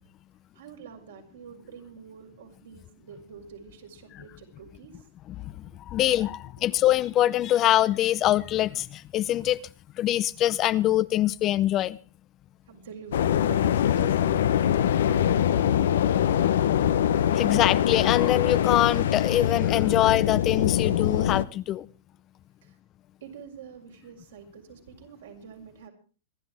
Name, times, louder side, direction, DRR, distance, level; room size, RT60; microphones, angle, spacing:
voice 1, 0.5-5.1 5.7-5.8 6.4-6.7 12.7-16.4 22.6-22.8 23.2-25.9, right 7 dB, 70° right, 5.5 m, -46 dB
voice 2, 5.4-9.6 10.0-12.0 17.3-21.9, left 13 dB, 35° left, 0.6 m, -24 dB
sound 1, 13.1-21.4, left 10 dB, 70° left, 0.8 m, -23 dB
26.5 x 11.5 x 3.5 m
hypercardioid pair, 110°, 0 cm